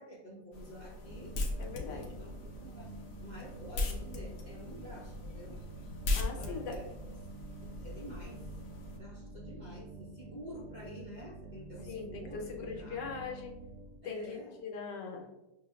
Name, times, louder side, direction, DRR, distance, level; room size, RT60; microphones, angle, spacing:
voice 1, 0.0-1.4 1.9-2.9 3.2-7.2 7.6-8.5 8.9-13.1 14.0-14.6, equal, 40° right, -7 dB, 0.6 m, -49 dB
sound 1, 0.5-9.0, left 2 dB, 65° left, 0.9 m, -39 dB
sound 2, 1.1-14.0, right 3 dB, 70° right, 0.9 m, -49 dB
voice 2, 1.6-2.1 6.1-6.8 11.8-13.6 14.0-15.3, left 5 dB, 80° left, 2 dB, 1.3 m, -41 dB
6.5 x 2.2 x 2.2 m, 1.0 s
omnidirectional pair, 1.8 m